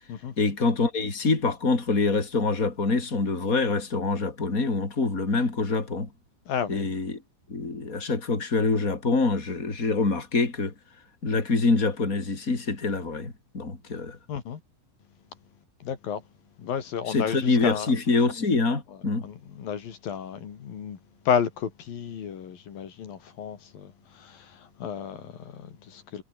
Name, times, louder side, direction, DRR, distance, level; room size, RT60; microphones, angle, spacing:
voice 1, 0.4-6.1 6.7-7.2 7.5-10.7 11.2-14.2 17.1-19.3, left 3 dB, 25° left, 4.6 m, -25 dB
voice 2, 6.5-6.9 14.3-14.6 15.8-16.2 16.6-17.9 19.2-21.0 21.3-26.2, left 8 dB, 80° left, 4.4 m, -32 dB
omnidirectional pair, 4.1 m